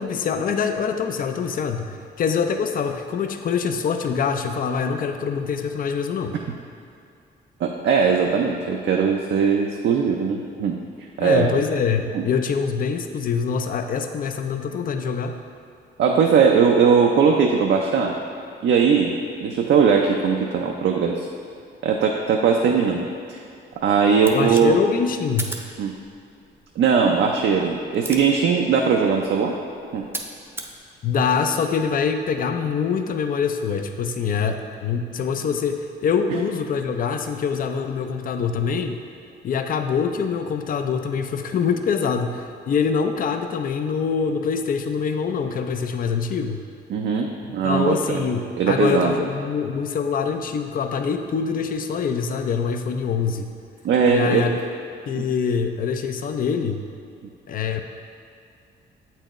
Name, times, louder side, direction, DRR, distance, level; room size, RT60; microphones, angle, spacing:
voice 1, 0.0-6.4 11.2-15.4 24.3-25.5 31.0-39.0 39.4-46.6 47.6-53.5 54.1-54.5 55.1-56.8 57.5-57.8, left 6 dB, 45° left, 6 dB, 0.5 m, -24 dB
voice 2, 7.6-10.8 11.2-11.5 12.1-12.2 16.0-18.1 18.6-21.3 21.8-23.4 23.8-24.8 25.8-25.9 26.8-29.5 29.9-30.0 46.9-48.2 48.6-49.1 53.8-54.6 55.2-55.3, right 6 dB, 65° right, 1 dB, 0.5 m, -19 dB
sound 1, 24.2-30.8, right 2 dB, 10° right, 0.6 m, -39 dB
7.6 x 4.5 x 3.0 m, 2.4 s
cardioid pair, 90°, 20 cm